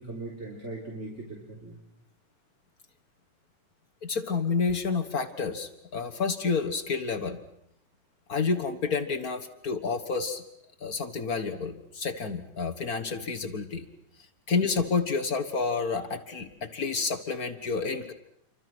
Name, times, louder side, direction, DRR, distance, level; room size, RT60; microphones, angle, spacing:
voice 1, 0.0-1.7 13.4-13.6 15.8-15.9 16.5-16.6, right 2 dB, 20° right, -2 dB, 3.9 m, -40 dB
voice 2, 4.0-7.4 8.3-10.4 10.8-13.8 14.5-18.1, left 5 dB, 50° left, 7 dB, 1.1 m, -29 dB
29.5 x 25.0 x 6.2 m, 0.77 s
omnidirectional pair, 3.7 m